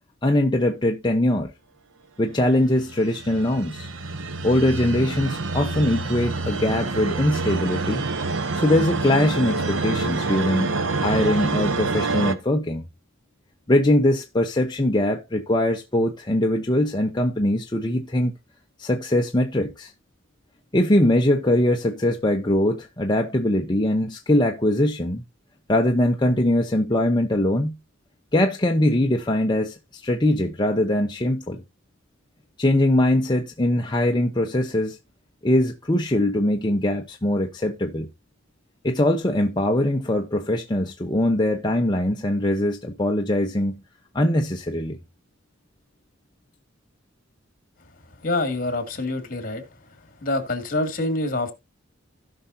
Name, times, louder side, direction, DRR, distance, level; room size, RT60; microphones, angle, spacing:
voice 1, 0.2-1.5 2.2-3.9 4.4-8.0 8.5-10.7 11.0-12.8 13.7-18.3 18.8-19.9 20.7-25.2 25.7-27.8 28.3-31.6 32.6-35.0 35.4-38.1 38.8-43.8 44.1-45.0, left 1 dB, 25° left, 0.8 m, -22 dB
sound 1, 2.7-12.3, right 3 dB, 80° right, 1.1 m, -27 dB
voice 2, 48.2-49.6 50.2-51.5, left 2 dB, 50° left, 2.3 m, -26 dB
16.5 x 5.8 x 2.7 m
head